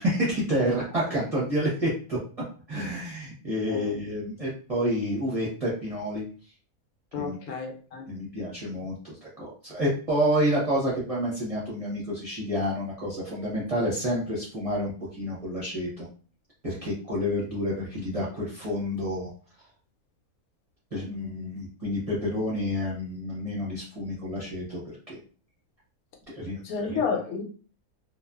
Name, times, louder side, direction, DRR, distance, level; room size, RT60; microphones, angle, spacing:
voice 1, 0.0-2.2 2.7-6.2 7.2-7.4 8.1-16.1 16.6-19.3 20.9-24.8 25.1-25.2 26.3-27.0, equal, 35° right, 0.6 m, -29 dB
voice 2, 3.7-4.0 7.1-8.1 26.6-27.4, left 5 dB, 80° left, 1.1 m, -31 dB
2.5 x 2.3 x 2.2 m
omnidirectional pair, 1.5 m